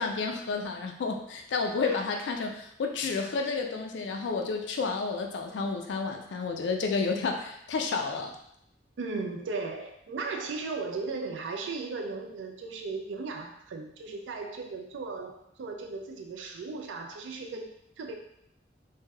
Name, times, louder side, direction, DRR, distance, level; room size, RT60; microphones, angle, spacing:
voice 1, 0.0-8.3, left 4 dB, 75° left, 4 dB, 0.4 m, -31 dB
voice 2, 9.0-18.2, right 4 dB, 80° right, 3 dB, 0.4 m, -36 dB
3.2 x 2.6 x 2.3 m, 0.73 s
head